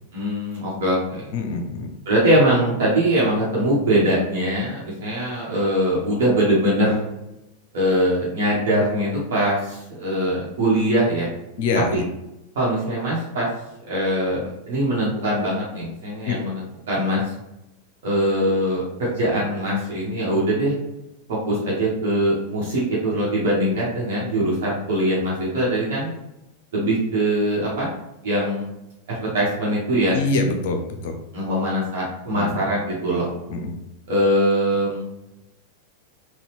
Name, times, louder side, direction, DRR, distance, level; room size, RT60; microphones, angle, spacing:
voice 1, 0.1-1.3 2.1-7.0 7.7-11.3 11.9-12.0 12.5-13.5 13.9-17.2 18.0-20.7 21.3-26.1 26.7-27.9 28.2-28.7 29.1-30.2 31.3-33.3 34.1-35.1, right 1 dB, 55° right, -6 dB, 1.1 m, -22 dB
voice 2, 1.3-1.9 11.6-12.0 16.2-16.5 30.1-31.2 32.3-32.4 33.5-33.7, left 3 dB, 50° left, 4 dB, 0.6 m, -24 dB
4.0 x 2.3 x 3.1 m, 0.90 s
figure-of-eight pair, 90°, 0 cm